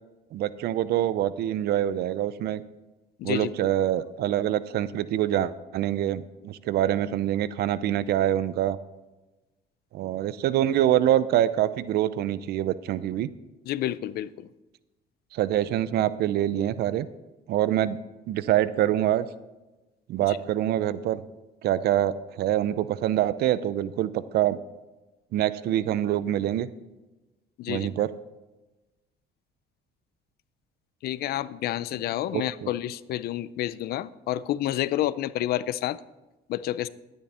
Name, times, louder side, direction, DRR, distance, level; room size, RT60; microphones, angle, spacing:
voice 1, 0.3-2.6 3.2-8.8 9.9-13.3 15.3-17.1 17.5-18.0 18.3-19.3 20.1-21.2 21.6-24.6 25.3-26.7 27.7-28.1 32.3-32.7, right 12 dB, 70° right, 16 dB, 0.6 m, -25 dB
voice 2, 3.2-3.5 13.7-14.5 20.3-20.4 27.6-27.9 31.0-36.0 36.5-36.9, left 13 dB, 65° left, 18 dB, 0.5 m, -29 dB
12.0 x 10.5 x 4.3 m, 1.1 s
cardioid pair, 110°, 17 cm